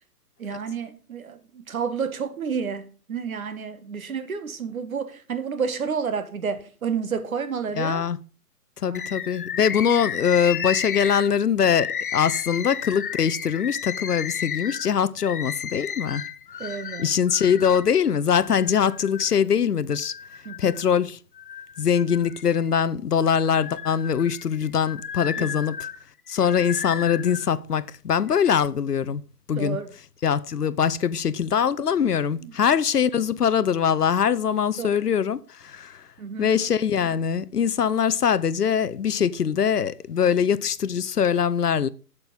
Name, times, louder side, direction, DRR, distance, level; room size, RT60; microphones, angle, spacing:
voice 1, 0.4-8.1 8.8-9.1 16.6-17.1 20.4-20.8 25.4-25.5 29.6-29.9 32.4-32.5 34.8-34.9 36.2-36.5, right 6 dB, 60° right, 1.5 m, -30 dB
voice 2, 7.8-8.2 8.8-16.2 17.0-20.1 20.6-21.2 21.8-25.8 26.3-29.2 29.5-29.8 30.2-36.0 36.4-41.9, left 7 dB, 75° left, 0.8 m, -22 dB
Bird, 8.9-17.9 18.4-19.4 19.9-20.9 21.4-22.7 23.2-27.5 28.2-28.7, left 8 dB, 35° left, 0.5 m, -33 dB
8.3 x 6.9 x 5.3 m
figure-of-eight pair, 130°, 47 cm